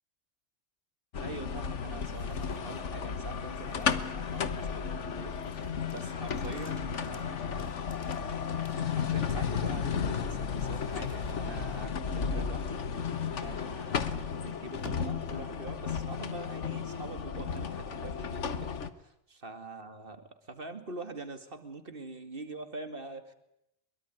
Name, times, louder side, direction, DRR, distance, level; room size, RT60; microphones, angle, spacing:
sound 1, 1.1-18.9, left 6 dB, 90° left, 1.6 m, -34 dB
voice 1, 1.2-7.8 9.0-12.8 13.4-23.3, right 3 dB, 50° right, 9 dB, 2.5 m, -44 dB
sound 2, 1.8-15.9, left 4 dB, 55° left, 2.5 m, -53 dB
23.5 x 23.0 x 9.6 m, 0.80 s
omnidirectional pair, 1.2 m